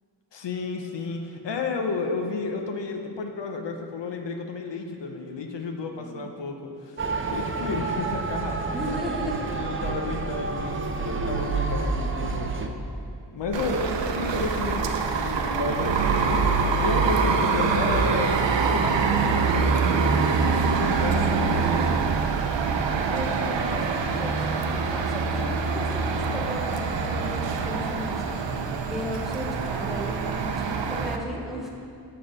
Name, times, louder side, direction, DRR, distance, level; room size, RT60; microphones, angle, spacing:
voice 1, 0.3-8.8 9.5-12.8 13.3-13.9 14.2-20.3 20.8-22.1, left 4 dB, 75° left, 3 dB, 0.7 m, -32 dB
voice 2, 6.0-6.3 8.7-9.6 13.6-13.9 20.4-21.5 23.0-31.7, equal, ahead, -2 dB, 0.9 m, -36 dB
Motor vehicle (road) / Siren, 7.0-12.7, right 4 dB, 30° right, 0.5 m, -29 dB
sound 1, 13.5-31.2, right 5 dB, 85° right, 0.6 m, -24 dB
6.9 x 3.8 x 6.4 m, 2.5 s
wide cardioid pair, 110°, 43 cm